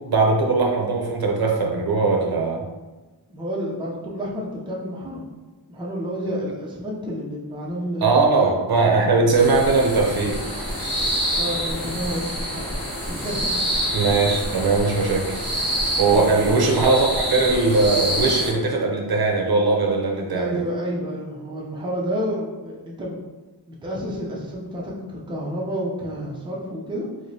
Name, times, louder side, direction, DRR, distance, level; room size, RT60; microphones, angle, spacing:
voice 1, 0.0-2.7 8.0-10.7 13.9-15.5 16.0-20.6, right 3 dB, 65° right, 0 dB, 0.6 m, -20 dB
voice 2, 3.3-5.2 5.7-8.4 11.3-12.6 13.1-13.6 16.1-16.3 20.4-23.2 23.7-27.1, equal, 10° right, -4 dB, 0.4 m, -30 dB
sound 1, 9.3-18.5, equal, 5° left, 1.3 m, -27 dB
4.7 x 2.0 x 2.6 m, 1.2 s
wide cardioid pair, 175°, 41 cm